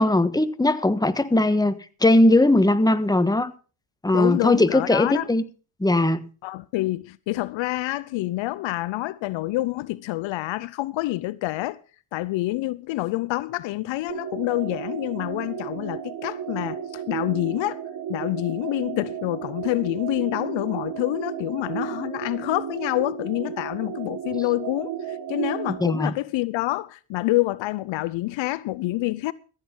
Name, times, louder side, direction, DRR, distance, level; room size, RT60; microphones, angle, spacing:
voice 1, 0.0-3.5 4.0-5.4 5.8-6.2 25.8-26.1, left 1 dB, 10° left, 1.3 m, -19 dB
voice 2, 4.1-5.3 6.4-11.8 12.1-17.8 18.1-29.3, left 18 dB, 65° left, 0.7 m, -27 dB
sound 1, 14.1-26.0, right 8 dB, 45° right, 1.6 m, -33 dB
15.0 x 8.2 x 5.4 m
hypercardioid pair, 55°, 50 cm